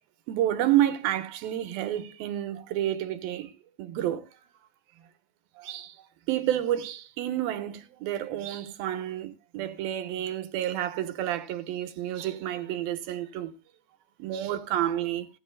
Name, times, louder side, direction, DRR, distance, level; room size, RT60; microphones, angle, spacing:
voice 1, 0.3-3.5 3.8-4.2 5.6-13.5 14.2-15.3, right 12 dB, 90° right, 3.0 m, -30 dB
19.0 x 10.5 x 2.2 m
omnidirectional pair, 4.0 m